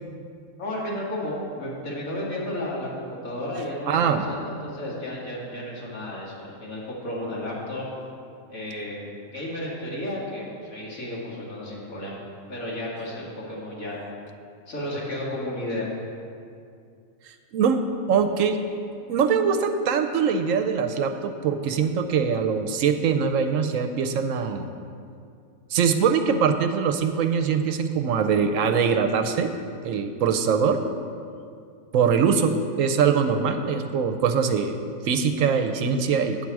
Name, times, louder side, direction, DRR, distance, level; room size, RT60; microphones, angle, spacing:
voice 1, 0.6-7.9 8.5-9.0 9.3-14.0 14.7-15.9, left 1 dB, 80° left, -5 dB, 2.4 m, -33 dB
voice 2, 3.9-4.2 17.3-17.8 18.1-18.6 19.1-24.7 25.7-29.5 29.8-30.8 31.9-34.8 35.0-36.5, right 6 dB, 75° right, 7 dB, 0.9 m, -22 dB
8.9 x 7.4 x 4.6 m, 2.4 s
omnidirectional pair, 1.5 m